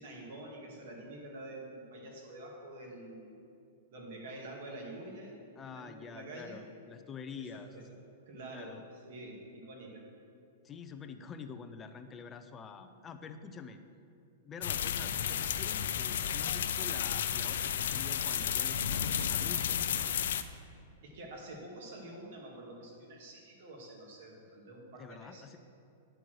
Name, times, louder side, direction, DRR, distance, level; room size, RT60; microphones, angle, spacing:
voice 1, 0.0-3.3 3.9-5.4 5.6-6.6 7.3-7.5 8.3-8.8 9.0-10.0 21.0-25.6, right 1 dB, 65° right, -1 dB, 2.1 m, -47 dB
voice 2, 5.6-7.9 8.5-8.8 10.6-13.8 14.4-20.0 24.9-25.6, left 6 dB, 20° left, 8 dB, 0.5 m, -47 dB
sound 1, 14.6-20.4, left 9 dB, 75° left, 0.4 m, -32 dB
9.0 x 4.6 x 6.3 m, 2.5 s
hypercardioid pair, 140°, 0 cm